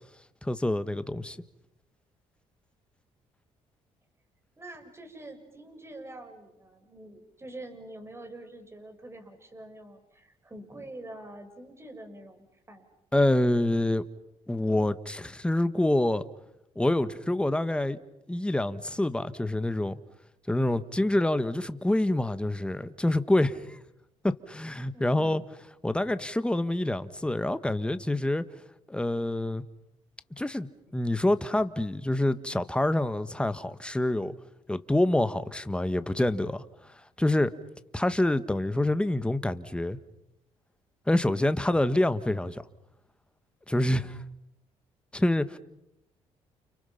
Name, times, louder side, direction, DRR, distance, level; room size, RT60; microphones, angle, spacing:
voice 1, 0.4-1.4 13.1-14.0 14.5-16.2 16.7-18.0 18.3-20.0 20.5-23.8 24.2-25.4 25.8-28.4 28.9-29.6 30.4-34.3 34.7-36.6 37.2-37.5 37.9-40.0 41.1-42.6 43.7-44.2 45.1-45.6, left 1 dB, 10° left, 1.6 m, -26 dB
voice 2, 4.6-12.9 24.9-25.5, right 1 dB, 20° right, 6.2 m, -46 dB
30.0 x 30.0 x 5.9 m
supercardioid pair, 75°, 13 cm